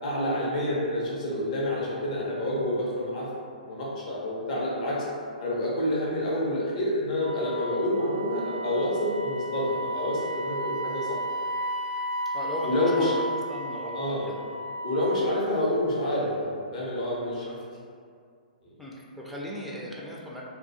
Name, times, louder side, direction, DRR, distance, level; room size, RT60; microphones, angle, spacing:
voice 1, 0.0-3.3 3.6-5.0 5.4-11.2 12.6-13.1 13.9-14.3 14.8-17.6 18.6-18.7, left 1 dB, 55° left, -6 dB, 0.7 m, -28 dB
Wind instrument woodwind instrument, 7.2-15.4, right 1 dB, 80° right, 0.3 m, -34 dB
voice 2, 12.3-13.2 13.5-14.4 17.5-17.6 18.8-20.4, equal, ahead, -6 dB, 0.3 m, -37 dB
2.2 x 2.2 x 2.7 m, 2.2 s
hypercardioid pair, 125°, 5 cm